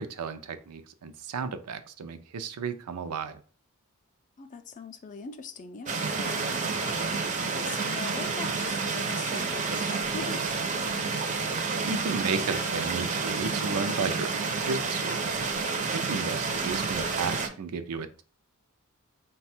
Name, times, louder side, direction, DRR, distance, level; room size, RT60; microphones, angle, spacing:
voice 1, 0.0-3.4 11.8-15.2 15.9-18.2, right 5 dB, 85° right, 0.5 m, -33 dB
voice 2, 4.4-6.5 7.0-10.5 16.2-16.4, left 5 dB, 35° left, 0.4 m, -42 dB
sound 1, 5.9-17.5, right 4 dB, 35° right, 0.5 m, -29 dB
4.0 x 2.2 x 4.3 m
head